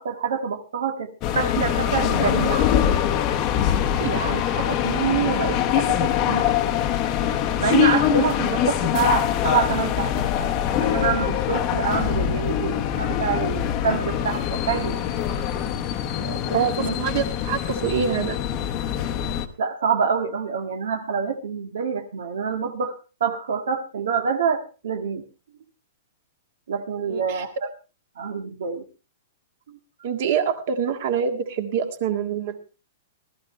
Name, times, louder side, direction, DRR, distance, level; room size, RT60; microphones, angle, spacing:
voice 1, 0.0-2.7 4.0-6.8 7.6-10.1 10.8-15.0 16.2-16.9 19.6-22.9 23.2-25.2 26.7-27.5 28.2-28.8 29.7-29.8, right 6 dB, 75° right, 5 dB, 1.7 m, -26 dB
sound 1, 1.2-19.5, left 10 dB, 20° left, 0.9 m, -23 dB
voice 2, 16.5-18.4 27.1-27.4 30.0-32.6, right 7 dB, 40° right, 7 dB, 1.8 m, -25 dB
19.0 x 13.5 x 3.3 m, 0.33 s
hypercardioid pair, 180°, 0 cm